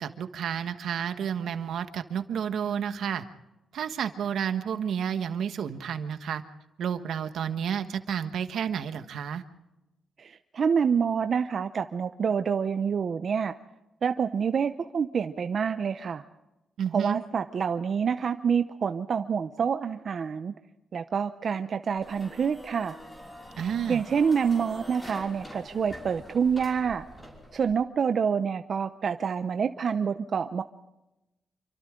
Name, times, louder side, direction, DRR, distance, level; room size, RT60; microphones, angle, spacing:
voice 1, 0.0-3.2 3.7-6.4 6.8-9.4 16.8-17.2 23.6-24.0, right 8 dB, 75° right, 9 dB, 1.4 m, -31 dB
voice 2, 10.2-13.5 14.0-16.2 16.9-20.5 20.9-23.0 23.9-27.0 27.5-30.6, right 6 dB, 50° right, 9 dB, 0.7 m, -27 dB
sound 1, 22.0-27.8, equal, 15° left, 5.7 m, -45 dB
27.5 x 24.5 x 3.8 m, 0.97 s
cardioid pair, 125°, 0 cm